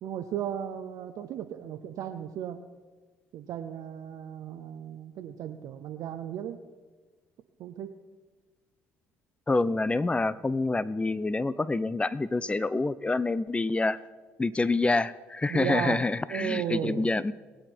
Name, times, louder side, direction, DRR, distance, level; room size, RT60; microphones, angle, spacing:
voice 1, 0.0-2.6 3.3-6.6 7.6-7.9 15.5-16.0 16.3-17.1, right 10 dB, 65° right, 6 dB, 0.7 m, -35 dB
voice 2, 9.5-14.0 14.4-17.3, left 3 dB, 15° left, 18 dB, 0.6 m, -27 dB
21.0 x 8.1 x 4.4 m, 1.3 s
hypercardioid pair, 55°, 6 cm